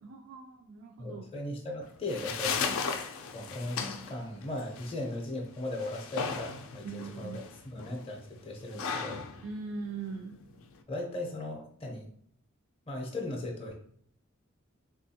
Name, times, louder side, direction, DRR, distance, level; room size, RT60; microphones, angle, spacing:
voice 1, 0.0-1.2 2.7-2.8 6.8-7.4 9.4-10.4, right 4 dB, 80° right, 3 dB, 0.4 m, -41 dB
voice 2, 1.0-2.6 3.3-9.2 10.9-12.1 12.9-13.7, left 1 dB, 25° left, 1 dB, 0.5 m, -37 dB
sound 1, 1.8-10.8, left 5 dB, 80° left, 0.4 m, -37 dB
3.4 x 2.3 x 2.7 m, 0.64 s
head